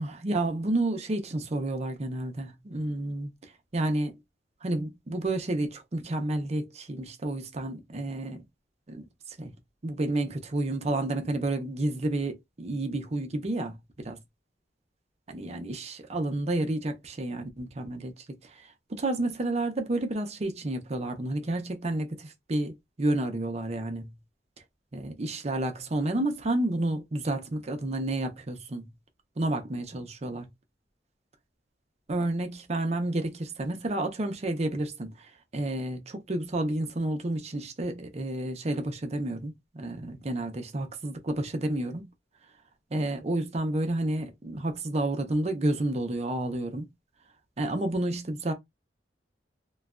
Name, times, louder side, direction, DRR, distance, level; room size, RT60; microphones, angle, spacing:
voice 1, 0.0-3.3 3.7-4.1 4.6-8.4 8.9-9.5 9.8-14.2 15.3-24.1 24.9-28.9 29.4-30.5 32.1-42.1 42.9-46.9 47.6-48.5, right 2 dB, 40° right, 0.6 m, -30 dB
3.0 x 2.2 x 2.4 m
head